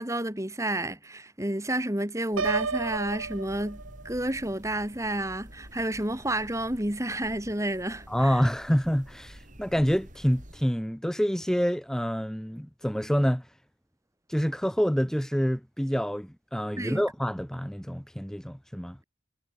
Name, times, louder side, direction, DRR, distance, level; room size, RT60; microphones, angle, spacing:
voice 1, 0.0-8.4 16.8-17.0, right 1 dB, 15° right, 2.3 m, -30 dB
sound 1, 2.3-10.6, equal, 40° right, 7.8 m, -49 dB
Piano, 2.4-4.3, right 4 dB, 75° right, 1.2 m, -31 dB
voice 2, 8.1-13.5 14.3-19.0, equal, 5° left, 1.4 m, -27 dB
head